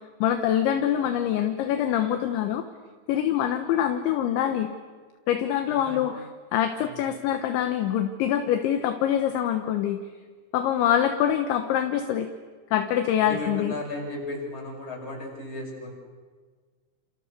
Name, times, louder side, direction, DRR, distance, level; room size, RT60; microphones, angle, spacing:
voice 1, 0.2-2.6 3.1-4.7 5.3-6.2 6.5-10.0 10.5-12.3 12.7-13.7, left 10 dB, 75° left, 7 dB, 3.3 m, -24 dB
voice 2, 13.2-15.9, left 2 dB, 25° left, 0 dB, 7.6 m, -35 dB
29.0 x 29.0 x 6.8 m, 1.5 s
omnidirectional pair, 5.9 m